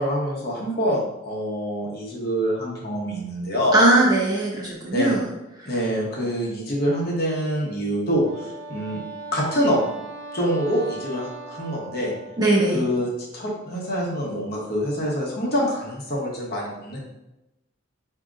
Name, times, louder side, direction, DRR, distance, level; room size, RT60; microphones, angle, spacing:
voice 1, 0.0-3.8 4.9-5.2 5.6-9.0 9.3-9.8 10.3-12.1 12.7-17.0, equal, 50° left, -4 dB, 0.9 m, -25 dB
voice 2, 3.7-5.2 5.6-5.7 12.4-12.8, right 1 dB, 20° right, -4 dB, 0.7 m, -19 dB
Wind instrument woodwind instrument, 8.0-12.7, right 4 dB, 55° right, 0.4 m, -38 dB
5.0 x 2.8 x 2.4 m, 0.94 s
head